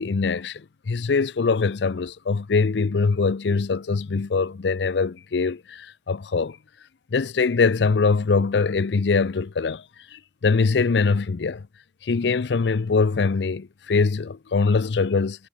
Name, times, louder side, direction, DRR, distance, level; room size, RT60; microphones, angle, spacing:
voice 1, 0.0-6.6 7.1-9.8 10.1-11.7 12.0-15.5, left 4 dB, 80° left, 0.5 m, -23 dB
head